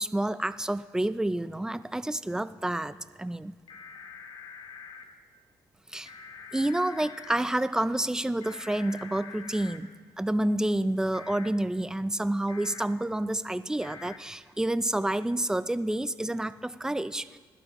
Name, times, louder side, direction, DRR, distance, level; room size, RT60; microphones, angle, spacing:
voice 1, 0.0-3.5 5.9-6.1 6.5-9.9 10.2-17.4, right 1 dB, 10° right, 13 dB, 0.4 m, -29 dB
sound 1, 3.7-5.0 6.1-7.4 8.4-9.8 11.1-11.5 12.5-12.8 13.8-14.2, left 5 dB, 80° left, 0.9 m, -45 dB
20.5 x 12.0 x 3.0 m, 1.4 s
cardioid pair, 90°, 8 cm